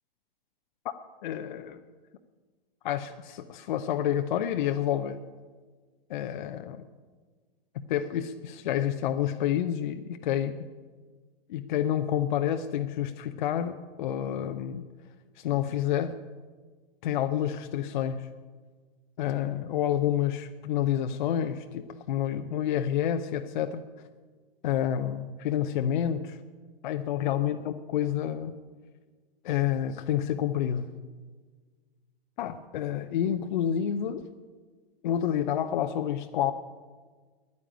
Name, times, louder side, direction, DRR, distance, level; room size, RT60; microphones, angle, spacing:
voice 1, 1.2-1.8 2.8-5.2 6.1-6.8 7.7-10.5 11.5-14.8 15.4-16.2 17.0-18.3 19.2-23.8 24.6-26.4 26.8-28.5 29.4-30.9 32.4-34.2 35.0-36.5, left 10 dB, 50° left, 8 dB, 0.7 m, -29 dB
9.8 x 9.4 x 8.9 m, 1.5 s
figure-of-eight pair, 110°, 30 cm